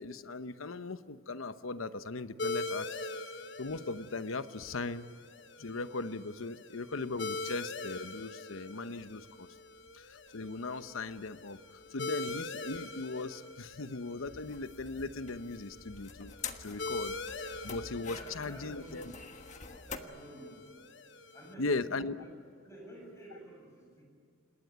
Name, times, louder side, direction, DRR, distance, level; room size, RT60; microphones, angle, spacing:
voice 1, 0.0-3.1 3.6-5.1 5.6-9.5 9.9-19.1 21.6-22.2, left 3 dB, 75° left, 12 dB, 0.9 m, -38 dB
sound 1, 2.4-21.5, left 3 dB, 60° left, 1.2 m, -43 dB
sound 2, 9.2-20.0, left 5 dB, 35° left, 1.4 m, -48 dB
voice 2, 18.0-19.2 19.8-20.7 21.3-24.1, equal, 15° left, 1 dB, 7.6 m, -50 dB
27.5 x 20.5 x 9.4 m, 2.3 s
head